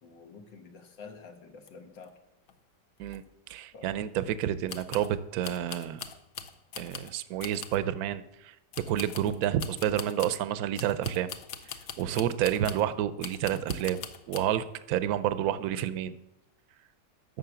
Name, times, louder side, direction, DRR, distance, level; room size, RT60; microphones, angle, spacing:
voice 1, 0.0-2.1 3.7-4.0, left 5 dB, 85° left, 5 dB, 2.0 m, -48 dB
sound 1, 1.7-1.8 2.0-2.1 2.5-2.6 3.1-3.2 4.7-5.1 5.4-7.1 7.4-7.8 8.7-10.4 10.8-12.9 13.2-14.4, left 8 dB, 60° left, 1.1 m, -42 dB
voice 2, 3.5-6.0 6.8-8.5 8.9-11.3 12.0-14.0 14.3-16.1, right 11 dB, 65° right, 13 dB, 1.0 m, -29 dB
11.5 x 6.7 x 6.9 m, 0.92 s
omnidirectional pair, 1.9 m